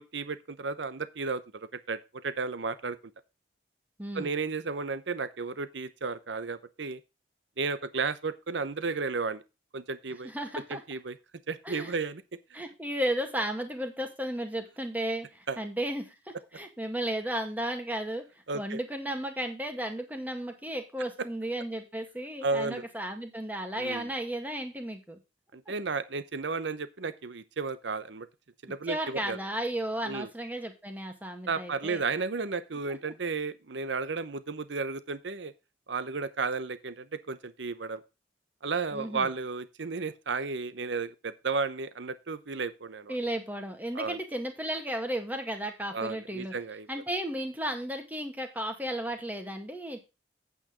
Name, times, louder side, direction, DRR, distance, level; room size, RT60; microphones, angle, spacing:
voice 1, 0.0-3.0 4.1-7.0 7.6-9.4 9.7-10.3 10.7-11.2 11.5-12.2 12.5-12.6 15.5-15.6 18.5-18.8 22.4-22.8 23.8-24.1 25.5-28.3 28.6-29.4 30.0-30.3 31.5-35.5 35.9-38.0 38.6-43.1 43.9-44.2 45.9-46.9, right 4 dB, 75° right, 14 dB, 0.8 m, -33 dB
voice 2, 4.0-4.3 10.2-10.8 11.6-12.0 12.5-18.2 18.5-25.2 28.9-32.0 38.9-39.3 43.1-46.5 46.9-50.0, right 1 dB, 10° right, 5 dB, 1.9 m, -34 dB
8.9 x 8.4 x 3.8 m, 0.27 s
head